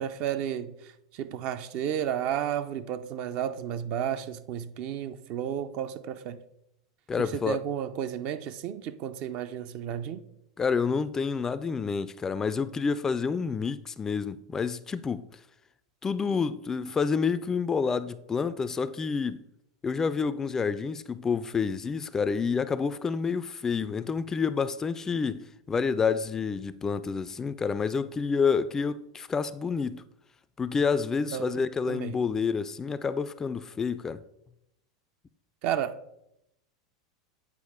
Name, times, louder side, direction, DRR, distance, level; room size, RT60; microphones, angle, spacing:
voice 1, 0.0-6.4 7.2-10.2 31.3-31.6 31.9-32.2 35.6-36.0, right 9 dB, 50° right, 0.5 m, -32 dB
voice 2, 7.1-7.6 10.6-15.2 16.0-19.4 19.8-30.0 30.6-34.2, left 5 dB, 20° left, 0.3 m, -28 dB
8.2 x 4.7 x 3.5 m
hypercardioid pair, 95°, 2 cm